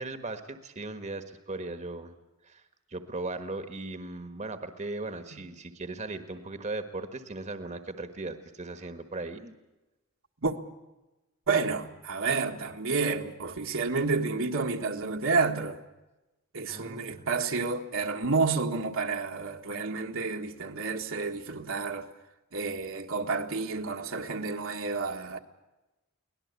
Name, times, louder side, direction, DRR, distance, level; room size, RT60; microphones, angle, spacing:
voice 1, 0.0-2.1 2.4-2.6 2.9-9.5 16.7-17.3, right 2 dB, 35° right, 1.4 m, -38 dB
voice 2, 11.5-15.8 16.5-22.1 22.5-25.4, right 4 dB, 65° right, 1.7 m, -30 dB
24.0 x 18.0 x 8.3 m
head